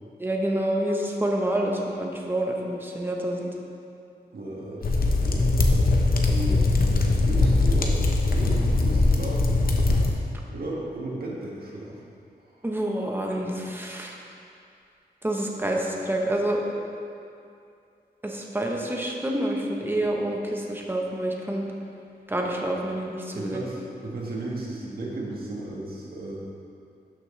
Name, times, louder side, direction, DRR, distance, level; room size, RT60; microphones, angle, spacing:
voice 1, 0.2-3.5 12.6-14.2 15.2-16.6 18.2-21.6 22.3-23.6, right 1 dB, 10° right, -1 dB, 1.0 m, -27 dB
voice 2, 4.3-5.4 6.3-6.6 7.2-8.0 8.3-9.6 10.5-12.0 23.3-26.3, right 2 dB, 65° right, -4 dB, 1.8 m, -34 dB
sound 1, 4.8-10.1, left 2 dB, 60° left, 0.8 m, -21 dB
12.0 x 6.2 x 3.3 m, 2.5 s
wide cardioid pair, 110°, 17 cm